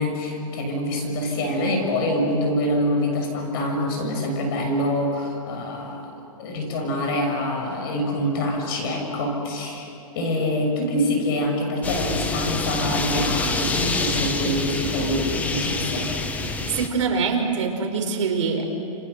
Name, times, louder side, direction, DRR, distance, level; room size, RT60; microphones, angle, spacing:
voice 1, 0.0-6.1 6.4-9.9 10.1-16.1, left 1 dB, 40° left, 2 dB, 6.6 m, -25 dB
sound 1, 11.8-16.9, left 3 dB, 10° left, 1.1 m, -27 dB
voice 2, 16.7-18.6, right 5 dB, 55° right, 2 dB, 5.0 m, -24 dB
29.0 x 29.0 x 6.9 m, 2.9 s
hypercardioid pair, 155°, 18 cm